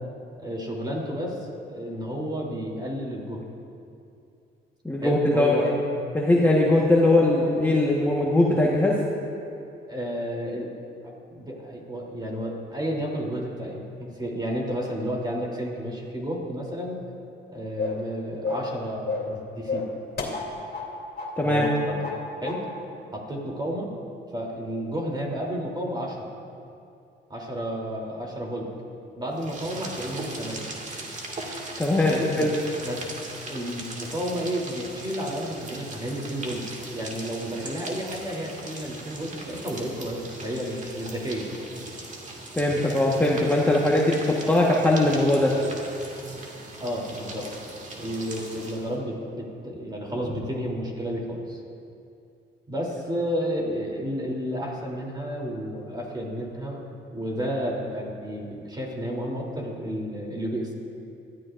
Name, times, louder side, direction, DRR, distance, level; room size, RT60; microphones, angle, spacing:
voice 1, 0.4-3.4 5.0-5.7 6.7-7.0 9.9-10.7 11.0-17.0 17.5-19.8 21.4-22.0 22.4-22.7 23.1-23.9 24.3-26.3 27.3-28.7 29.2-30.7 32.1-32.5 32.8-33.1 33.4-36.6 36.9-41.5 46.8-47.5 48.0-51.6 52.7-56.8 57.1-60.7, equal, 20° right, -2 dB, 3.3 m, -31 dB
voice 2, 4.8-5.7 6.1-9.0 21.4-21.6 31.8-32.5 42.6-45.5, left 1 dB, 10° left, -4 dB, 1.4 m, -21 dB
sound 1, 17.8-18.1 18.4-18.7 19.1-19.4 19.7-20.9 21.2-21.3 21.6-22.2 22.4-22.6, left 3 dB, 50° left, 2.7 m, -30 dB
sound 2, 29.3-49.0, right 2 dB, 40° right, 2.2 m, -39 dB
21.5 x 13.5 x 2.6 m, 2.6 s
cardioid pair, 90°, 20 cm